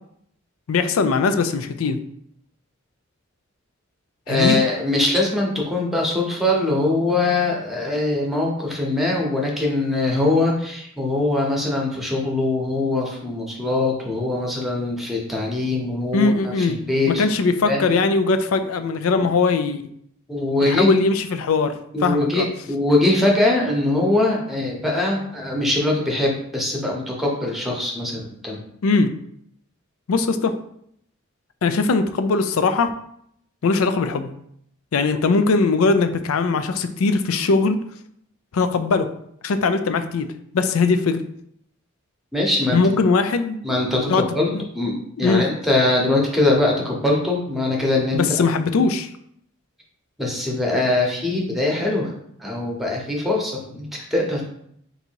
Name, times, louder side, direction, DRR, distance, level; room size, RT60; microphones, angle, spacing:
voice 1, 0.7-2.0 4.3-4.5 16.1-16.8 17.2-19.8 20.6-21.7 22.0-22.5 28.8-29.1 30.1-30.5 31.6-32.9 33.6-34.3 34.9-37.8 38.5-39.1 39.4-40.3 40.5-41.2 42.7-43.6 44.1-44.2 44.5-44.6 45.2-45.4 48.1-49.1, left 4 dB, 85° left, 9 dB, 0.4 m, -20 dB
voice 2, 4.3-17.3 17.6-17.9 19.1-19.3 20.3-20.9 21.9-28.6 42.3-42.8 43.6-44.5 44.7-48.5 50.2-52.1 52.4-54.4, left 2 dB, ahead, -1 dB, 0.9 m, -22 dB
3.8 x 2.7 x 4.5 m, 0.70 s
head